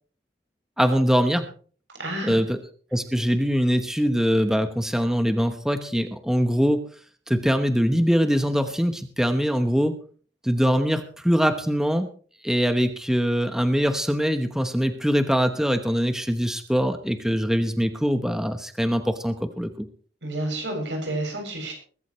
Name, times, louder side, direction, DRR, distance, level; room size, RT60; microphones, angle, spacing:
voice 1, 0.8-1.5 2.2-2.6 2.9-6.8 7.3-10.0 10.4-12.1 12.4-19.9, equal, 5° right, 7 dB, 1.0 m, -23 dB
voice 2, 2.0-2.4 20.2-21.7, right 1 dB, 80° right, 3 dB, 7.4 m, -30 dB
22.0 x 13.0 x 3.2 m, 0.42 s
head